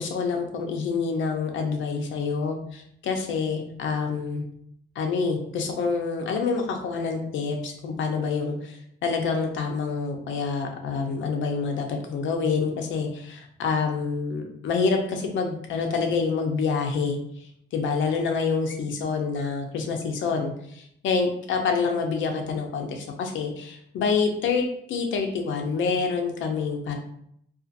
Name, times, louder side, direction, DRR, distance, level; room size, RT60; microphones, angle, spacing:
voice 1, 0.0-4.4 5.0-17.2 17.7-27.0, left 5 dB, 75° left, 3 dB, 0.6 m, -27 dB
2.6 x 2.4 x 2.4 m, 0.71 s
cardioid pair, 90°, 20 cm